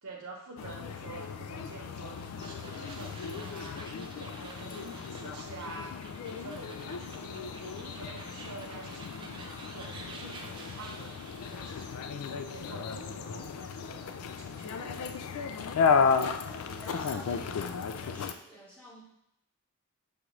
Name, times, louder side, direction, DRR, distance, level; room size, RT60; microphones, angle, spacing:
voice 1, 0.0-6.0 6.3-11.1 11.5-15.5, right 2 dB, 70° right, -2 dB, 0.9 m, -47 dB
sound 1, 0.6-18.3, left 5 dB, 75° left, 0.3 m, -34 dB
sound 2, 1.9-12.0, right 2 dB, 20° right, 0.4 m, -50 dB
voice 2, 16.5-19.0, equal, 5° left, -5 dB, 0.9 m, -50 dB
6.6 x 2.4 x 3.0 m, 0.80 s
head